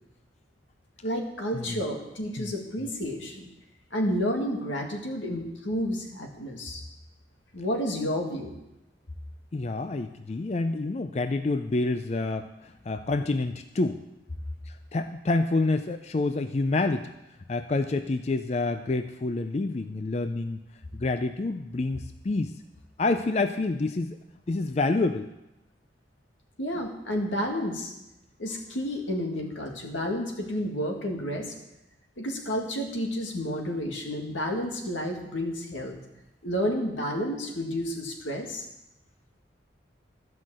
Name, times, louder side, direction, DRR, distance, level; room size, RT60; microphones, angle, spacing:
voice 1, 1.0-3.5 3.9-6.8 7.5-8.6 26.6-27.9 28.4-31.6 32.2-36.0 36.4-38.6, equal, 85° left, 2 dB, 1.9 m, -30 dB
voice 2, 9.5-14.0 14.7-17.1 17.5-20.6 20.9-22.6 23.0-24.2 24.5-25.3, left 3 dB, 35° left, 8 dB, 0.4 m, -28 dB
13.5 x 5.7 x 7.5 m, 0.93 s
head